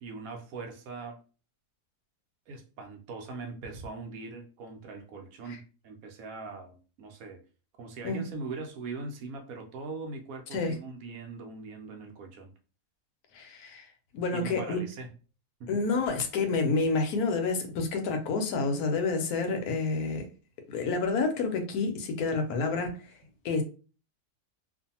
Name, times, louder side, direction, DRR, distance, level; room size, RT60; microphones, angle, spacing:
voice 1, 0.0-1.2 2.5-7.4 7.8-12.5 14.3-15.1 15.6-15.8, right 3 dB, 70° right, 0.9 m, -41 dB
voice 2, 13.3-13.9 14.1-14.8 15.7-20.2 20.7-23.0 23.4-23.6, left 4 dB, 75° left, 1.1 m, -29 dB
2.5 x 2.5 x 2.7 m
omnidirectional pair, 1.6 m